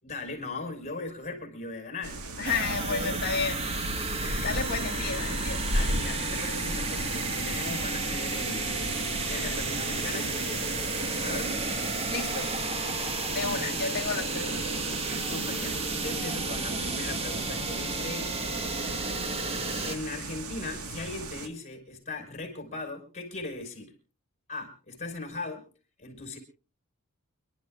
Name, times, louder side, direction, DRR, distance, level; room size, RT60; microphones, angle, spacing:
voice 1, 0.0-2.2 2.5-2.6 2.9-3.2 4.2-4.7 5.7-10.8 11.2-11.6 13.4-13.6 15.2-18.3 19.8-23.9 24.5-25.7 26.0-26.4, left 3 dB, 30° left, 5.2 m, -38 dB
sound 1, 2.0-21.5, right 2 dB, 85° right, 1.7 m, -36 dB
voice 2, 2.4-3.9 4.4-5.7 12.1-12.5 13.3-14.8, left 5 dB, 45° left, 1.4 m, -32 dB
sound 2, 2.4-20.0, right 3 dB, 30° right, 1.5 m, -32 dB
29.5 x 11.5 x 2.5 m
head